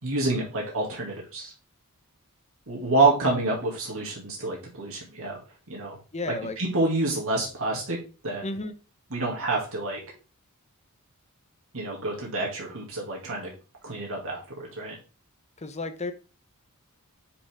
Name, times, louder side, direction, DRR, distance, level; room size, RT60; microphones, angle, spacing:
voice 1, 0.0-1.5 2.7-5.4 5.7-6.0 6.6-8.0 8.2-8.5 9.1-10.0 11.7-13.5 13.8-15.0, right 2 dB, 65° right, 2.5 m, -27 dB
voice 2, 6.1-6.6 8.4-8.7 15.6-16.1, left 3 dB, 30° left, 0.9 m, -32 dB
9.7 x 5.1 x 3.6 m
head